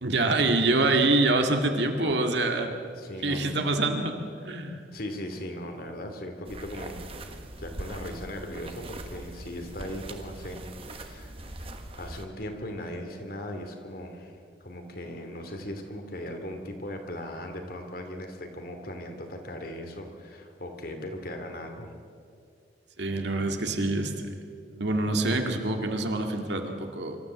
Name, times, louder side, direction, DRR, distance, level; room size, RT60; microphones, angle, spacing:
voice 1, 0.0-2.7 3.2-4.1 4.4-4.8 23.0-24.3 24.7-27.2, right 2 dB, 70° right, 4 dB, 2.1 m, -25 dB
voice 2, 3.0-3.8 4.9-7.0 7.3-21.9, left 1 dB, 50° left, 5 dB, 2.5 m, -38 dB
sound 1, 6.4-12.2, right 1 dB, 30° right, 1.4 m, -41 dB
25.0 x 13.5 x 7.6 m, 2.3 s
head